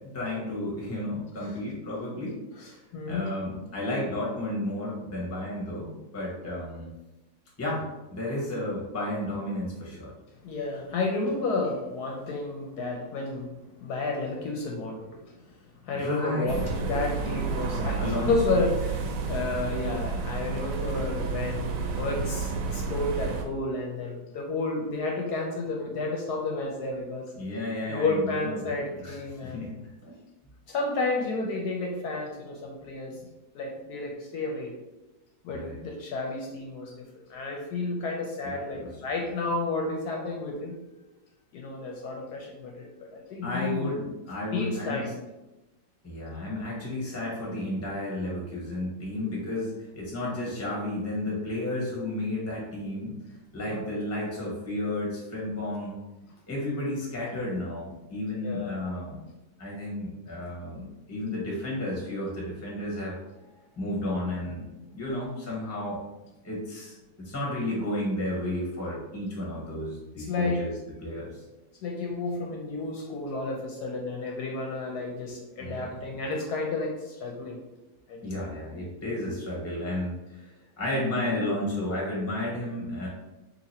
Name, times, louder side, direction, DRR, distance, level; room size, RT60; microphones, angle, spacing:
voice 1, 0.0-2.8 3.1-6.9 7.6-10.1 15.9-16.6 18.0-18.3 20.9-21.1 27.4-28.7 29.0-29.2 29.4-30.1 35.5-35.7 38.7-38.9 43.4-45.0 46.0-53.1 53.5-56.0 56.5-59.2 59.6-63.2 63.8-64.7 64.9-66.0 66.4-70.7 71.0-71.4 75.6-75.9 78.2-83.1, left 1 dB, 10° left, -4 dB, 0.7 m, -32 dB
voice 2, 2.6-3.3 10.4-13.5 13.8-27.3 27.9-29.6 30.7-33.2 33.5-34.7 35.4-40.8 41.5-43.9 44.5-45.1 53.7-53.9 58.4-58.8 63.8-63.9 70.2-70.6 71.8-77.6 78.1-78.5, left 3 dB, 70° left, 0 dB, 1.0 m, -31 dB
sound 1, 16.5-23.4, right 4 dB, 85° right, 1.2 m, -30 dB
2.9 x 2.8 x 4.1 m, 1.0 s
omnidirectional pair, 1.9 m